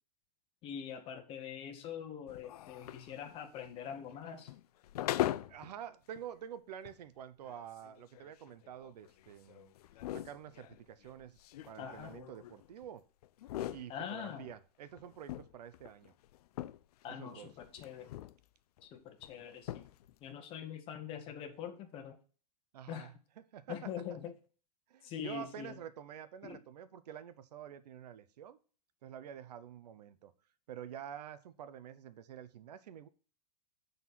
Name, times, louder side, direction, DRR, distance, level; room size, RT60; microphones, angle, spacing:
voice 1, 0.6-4.5 11.8-12.1 13.9-14.5 17.0-18.1 18.8-19.9 20.2-22.2 22.9-23.1 23.7-24.3 25.0-25.8 26.4-26.6, left 8 dB, 25° left, 7 dB, 1.0 m, -44 dB
sound 1, 2.3-5.7 6.1-6.2 6.8-6.9 7.4-12.9 13.2-14.6 15.0-17.0 17.3-18.4 18.8-18.9 19.2-19.3 19.6-20.1, left 14 dB, 70° left, 0.4 m, -41 dB
voice 2, 5.5-9.7 10.1-11.4 11.7-13.0 13.7-16.1 17.1-17.5 22.7-23.9 24.9-28.6 29.0-30.3 30.7-33.1, right 9 dB, 80° right, 14 dB, 0.8 m, -48 dB
7.4 x 4.0 x 6.0 m, 0.39 s
supercardioid pair, 155°, 21 cm